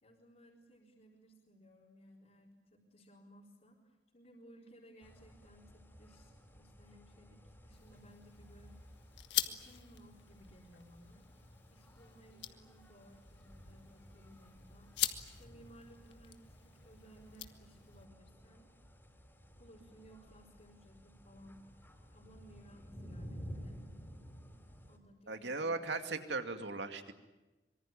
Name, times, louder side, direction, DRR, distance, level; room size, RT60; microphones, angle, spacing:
voice 1, 0.0-8.9 9.4-11.3 11.7-14.9 15.4-18.7 19.6-21.6 22.1-23.8 24.9-25.7, right 1 dB, 45° left, -5 dB, 4.4 m, -60 dB
sound 1, 5.0-25.0, equal, 10° left, 4.5 m, -54 dB
sound 2, 7.7-18.0, left 12 dB, 90° left, 1.6 m, -44 dB
voice 2, 25.3-27.1, right 3 dB, 90° right, 6 dB, 2.4 m, -37 dB
25.0 x 23.5 x 9.0 m, 1.1 s
head